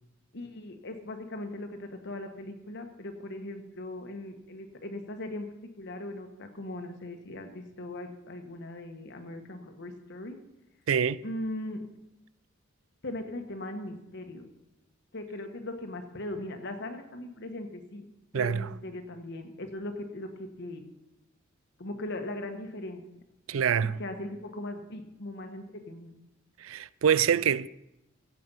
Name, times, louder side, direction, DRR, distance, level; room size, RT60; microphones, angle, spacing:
voice 1, 0.3-5.5 5.8-10.4 11.2-11.8 13.0-14.4 15.1-18.1 18.3-20.8 21.8-23.0 24.0-26.1, left 1 dB, 60° left, 1.4 m, -39 dB
voice 2, 10.9-11.2 18.3-18.7 23.5-24.0 26.6-27.7, right 8 dB, 80° right, 0.4 m, -25 dB
15.5 x 7.7 x 5.6 m
head